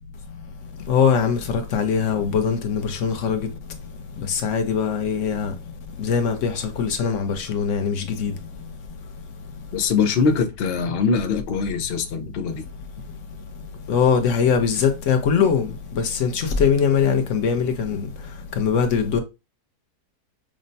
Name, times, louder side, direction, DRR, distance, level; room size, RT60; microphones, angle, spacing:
voice 1, 0.9-3.5 4.3-5.5 6.0-8.3 13.9-15.7 15.9-18.1 18.6-19.2, left 6 dB, 60° left, 0.9 m, -21 dB
voice 2, 9.7-12.6, left 5 dB, 90° left, 0.5 m, -22 dB
6.1 x 2.1 x 2.6 m
omnidirectional pair, 1.8 m